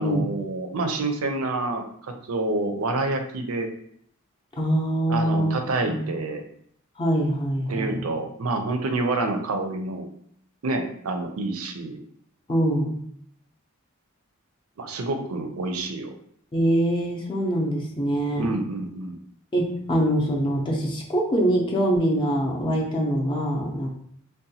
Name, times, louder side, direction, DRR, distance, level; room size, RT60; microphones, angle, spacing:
voice 1, 0.0-3.7 5.1-6.4 7.7-10.1 10.6-12.0 14.8-16.1 18.4-19.2, right 2 dB, 80° right, 6 dB, 0.5 m, -28 dB
voice 2, 4.6-6.1 7.0-8.0 12.5-13.0 16.5-18.5 19.5-23.9, right 1 dB, 25° left, -1 dB, 0.5 m, -24 dB
3.9 x 2.1 x 2.7 m, 0.66 s
head